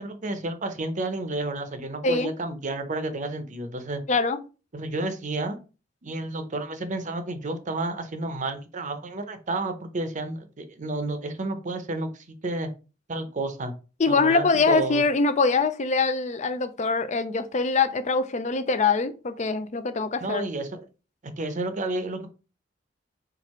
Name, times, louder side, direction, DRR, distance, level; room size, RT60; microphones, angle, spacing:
voice 1, 0.0-4.0 4.7-5.6 6.0-12.7 13.1-13.7 14.1-15.0 20.2-20.8 21.2-22.3, right 2 dB, 40° right, 0.7 m, -31 dB
voice 2, 4.1-4.4 14.0-20.4, left 4 dB, 40° left, 0.5 m, -23 dB
4.5 x 2.5 x 4.3 m
head